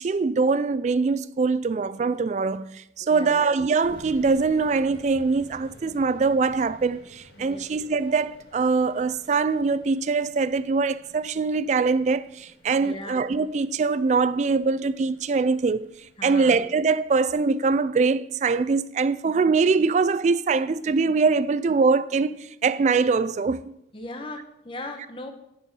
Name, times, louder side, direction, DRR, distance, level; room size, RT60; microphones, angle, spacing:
voice 1, 0.0-15.9 16.2-23.7, right 4 dB, 40° right, 0.3 m, -23 dB
voice 2, 3.0-3.4 7.4-7.6 12.8-13.2 16.2-16.5 23.9-25.3, left 2 dB, 30° left, 0.9 m, -38 dB
sound 1, 3.8-16.2, equal, 65° left, 1.7 m, -51 dB
10.5 x 5.0 x 5.3 m
head